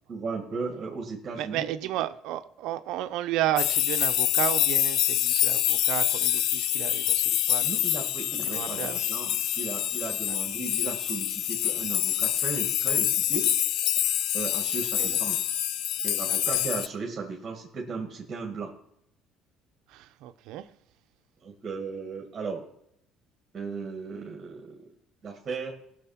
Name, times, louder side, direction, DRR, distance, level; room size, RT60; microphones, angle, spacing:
voice 1, 0.1-1.7 7.6-13.5 14.3-15.5 16.0-18.7 21.4-22.6 23.5-24.8 25.2-25.7, right 4 dB, 30° right, 2.0 m, -36 dB
voice 2, 1.3-7.6 8.4-9.0 15.0-15.2 16.3-16.6 19.9-20.6, right 13 dB, 75° right, 0.7 m, -32 dB
sound 1, 3.6-16.9, left 12 dB, 65° left, 0.4 m, -26 dB
18.0 x 6.6 x 5.8 m
cardioid pair, 140°, 0 cm